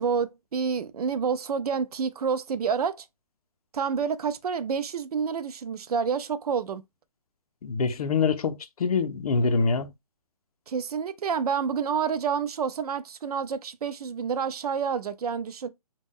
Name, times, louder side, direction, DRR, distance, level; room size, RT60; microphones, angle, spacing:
voice 1, 0.0-3.1 3.7-6.8 10.7-15.7, right 6 dB, 85° right, 0.4 m, -28 dB
voice 2, 7.6-9.9, left 4 dB, 75° left, 0.5 m, -25 dB
2.1 x 2.0 x 3.4 m
hypercardioid pair, 175°, 19 cm